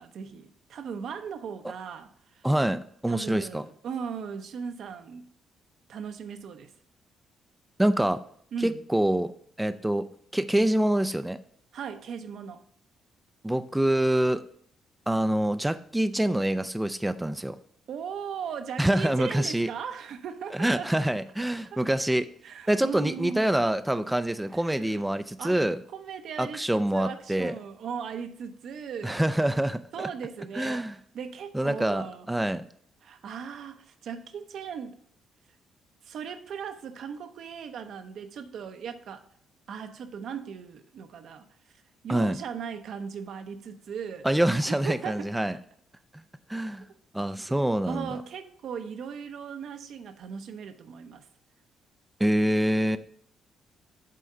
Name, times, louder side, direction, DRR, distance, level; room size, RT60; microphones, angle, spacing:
voice 1, 0.0-2.5 3.1-5.3 5.9-6.7 8.5-8.8 11.7-12.6 17.9-20.9 21.4-21.8 22.4-23.4 24.5-25.1 25.4-25.6 25.9-29.2 29.9-30.9 31.1-32.3 33.0-35.0 36.0-39.2 39.7-41.5 42.0-44.3 44.7-45.3 47.9-51.3, right 7 dB, 70° right, 0.7 m, -38 dB
voice 2, 2.4-3.6 7.8-8.2 8.6-9.3 9.6-10.1 10.3-11.4 13.4-14.4 15.1-17.6 18.8-19.7 20.6-22.3 22.7-25.8 26.4-27.5 29.0-30.1 30.5-30.9 31.5-32.7 42.1-42.4 44.2-45.5 46.5-46.8 47.1-48.1 52.2-53.0, right 1 dB, 10° right, 0.4 m, -25 dB
7.7 x 3.7 x 5.4 m
cardioid pair, 90°, 0 cm